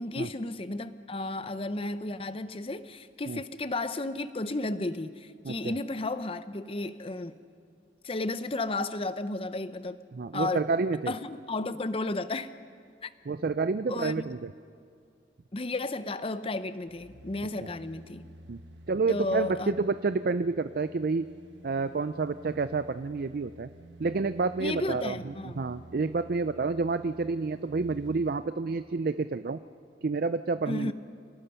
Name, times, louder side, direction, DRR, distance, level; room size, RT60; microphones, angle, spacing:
voice 1, 0.0-7.4 8.0-10.0 10.3-10.6 11.1-12.5 13.0-13.1 13.9-14.2 15.5-18.2 19.1-19.8 24.6-25.7 30.7-30.9, left 2 dB, 30° left, 0.7 m, -33 dB
voice 2, 5.5-5.8 10.1-11.1 13.3-14.5 18.5-18.6 18.9-21.3 21.6-23.7 24.0-29.6 30.0-30.9, right 4 dB, 55° right, 0.4 m, -29 dB
sound 1, 16.8-28.4 28.8-28.9, right 1 dB, 80° right, 1.1 m, -51 dB
28.5 x 18.5 x 5.7 m
head